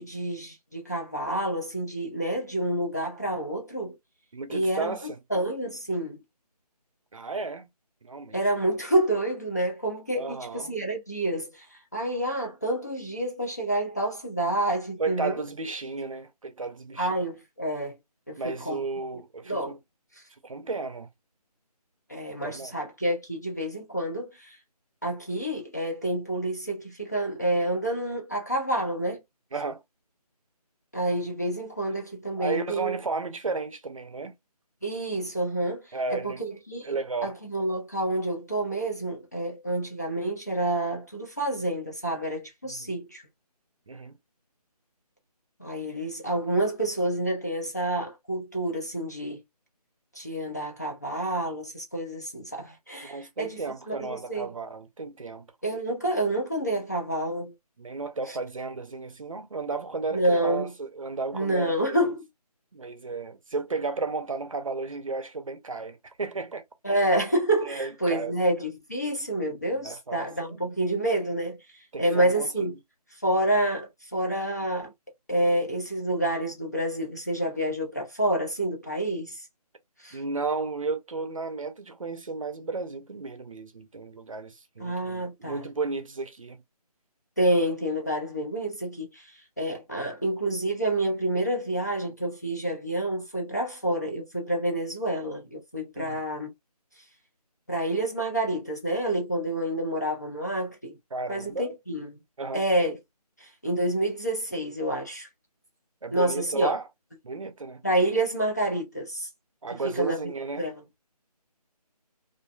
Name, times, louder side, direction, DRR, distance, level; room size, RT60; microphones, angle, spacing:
voice 1, 0.0-4.0 4.5-5.0 5.3-6.2 8.3-15.4 17.0-18.0 18.3-18.8 19.4-19.7 20.2-20.3 22.1-24.6 25.0-29.2 30.9-33.0 34.8-37.0 37.2-43.2 45.6-49.4 50.1-53.6 53.9-54.5 55.6-57.5 58.3-58.4 60.1-60.7 61.3-62.2 66.8-72.7 73.2-74.9 75.3-79.5 80.0-80.2 84.8-85.7 87.4-96.5 97.7-101.0 101.3-102.2 102.5-103.0 103.4-105.3 106.1-106.7 107.8-109.3 109.8-110.3 110.6-110.7, right 1 dB, 25° left, 0.5 m, -28 dB
voice 2, 4.3-5.2 7.1-7.7 8.0-8.4 10.1-10.8 15.0-17.1 18.4-19.8 20.4-21.1 22.4-22.7 29.5-29.8 32.4-34.3 35.9-36.4 36.8-37.3 42.8-42.9 43.9-44.2 53.0-55.5 57.8-62.0 62.7-67.0 67.6-68.3 69.7-70.6 71.9-72.5 80.1-86.6 96.0-96.2 101.1-101.7 102.4-102.6 106.0-106.8 107.2-107.8 109.6-110.7, right 3 dB, 55° right, 0.6 m, -33 dB
2.5 x 2.1 x 2.4 m
figure-of-eight pair, 175°, 20 cm